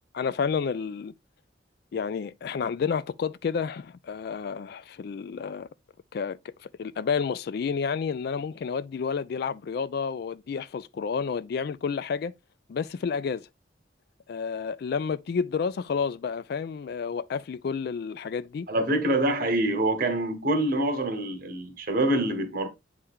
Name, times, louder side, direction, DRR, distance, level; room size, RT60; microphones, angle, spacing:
voice 1, 0.1-1.1 1.9-5.7 6.1-12.3 12.7-13.5 14.3-18.7, left 6 dB, 55° left, 0.3 m, -30 dB
voice 2, 18.7-22.7, right 1 dB, 50° right, 1.2 m, -25 dB
8.4 x 3.3 x 3.6 m
head